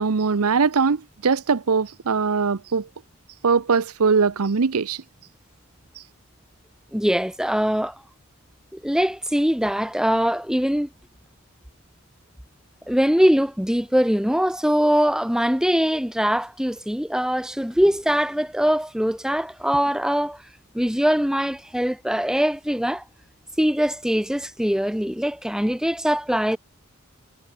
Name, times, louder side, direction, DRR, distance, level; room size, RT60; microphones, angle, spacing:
voice 1, 0.0-2.9 3.4-5.0, right 5 dB, 85° right, 0.7 m, -21 dB
voice 2, 6.9-8.0 8.7-10.9 12.9-20.4 20.7-23.0 23.6-26.6, equal, 5° right, 1.0 m, -22 dB
head